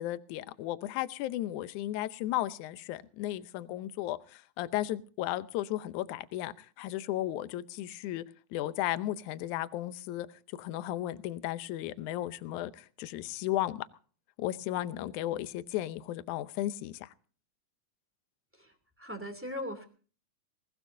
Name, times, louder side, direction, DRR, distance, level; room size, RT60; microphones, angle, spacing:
voice 1, 0.0-8.2 8.5-10.3 10.6-13.9 14.4-17.1, left 14 dB, 75° left, 1.9 m, -35 dB
voice 2, 18.5-19.9, left 1 dB, 5° right, 2.0 m, -40 dB
20.0 x 19.5 x 2.7 m
omnidirectional pair, 4.4 m